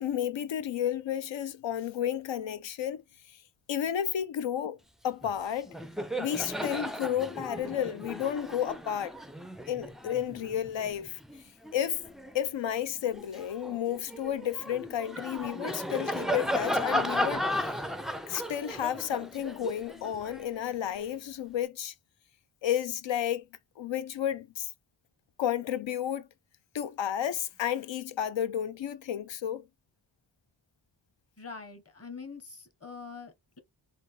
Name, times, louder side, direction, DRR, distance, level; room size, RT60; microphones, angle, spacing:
voice 1, 0.0-3.0 3.3-3.4 3.7-4.8 5.0-5.7 6.2-9.1 9.7-11.2 11.7-12.0 12.3-17.7 18.3-21.9 22.6-23.5 23.8-24.7 25.4-26.3 26.7-29.6, left 10 dB, 80° left, 0.6 m, -32 dB
Laughter, 5.2-5.4 5.7-12.4 12.9-21.1, equal, ahead, 0.3 m, -35 dB
voice 2, 31.4-33.6, left 4 dB, 30° left, 1.1 m, -44 dB
3.8 x 2.4 x 3.2 m
wide cardioid pair, 70°, 45 cm